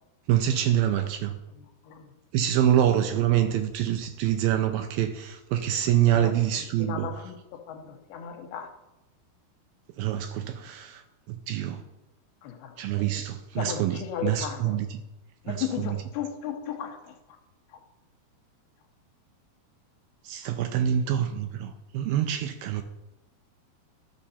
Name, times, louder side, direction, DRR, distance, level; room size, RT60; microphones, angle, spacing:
voice 1, 0.3-1.4 2.3-7.1 10.0-11.9 12.8-15.0 15.5-16.0 20.2-22.8, right 11 dB, 80° right, 7 dB, 2.2 m, -26 dB
voice 2, 6.8-8.7 12.4-13.2 13.6-14.8 15.4-17.4 17.7-17.8 20.4-20.5, left 9 dB, 80° left, 5 dB, 2.7 m, -36 dB
12.5 x 6.4 x 4.2 m, 0.96 s
omnidirectional pair, 4.6 m